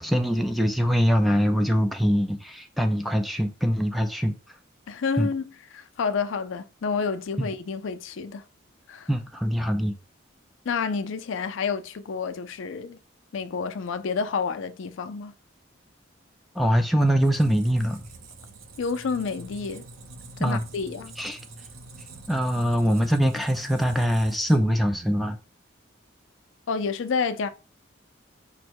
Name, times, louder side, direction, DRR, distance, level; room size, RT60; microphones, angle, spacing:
voice 1, 0.0-4.3 5.2-5.3 7.4-7.5 9.1-9.9 16.6-18.0 20.4-20.6 21.2-21.4 22.3-25.4, equal, ahead, 0.3 m, -23 dB
voice 2, 4.9-5.4 5.7-8.4 8.9-9.1 10.7-13.0 13.3-15.3 18.8-19.8 20.4-21.1 26.7-27.5, left 5 dB, 70° left, 0.4 m, -29 dB
Squeak, 17.0-24.9, right 3 dB, 85° right, 0.7 m, -46 dB
5.2 x 2.1 x 4.5 m
head